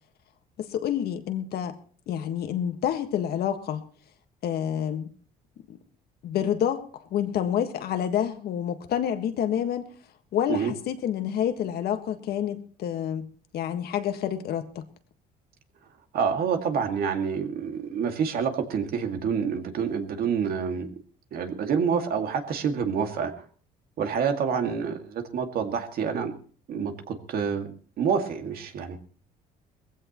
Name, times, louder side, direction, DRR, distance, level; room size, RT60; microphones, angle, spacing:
voice 1, 0.6-1.7 2.1-3.8 4.4-5.1 5.7-5.8 6.2-6.8 7.1-9.9 10.3-14.8, left 9 dB, 65° left, 7 dB, 1.6 m, -28 dB
voice 2, 16.1-21.0 21.3-23.4 24.0-26.3 26.7-27.7 28.0-29.0, right 6 dB, 65° right, 5 dB, 2.2 m, -27 dB
20.5 x 15.5 x 3.1 m, 0.43 s
cardioid pair, 110°, 17 cm